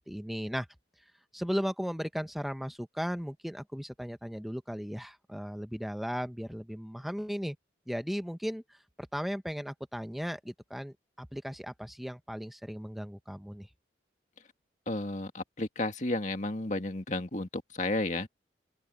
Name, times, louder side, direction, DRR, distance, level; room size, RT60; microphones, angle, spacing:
voice 1, 0.1-0.7 1.3-7.6 7.9-13.7, equal, ahead, 0.9 m, -36 dB
voice 2, 14.9-18.3, left 2 dB, 40° left, 2.2 m, -32 dB
head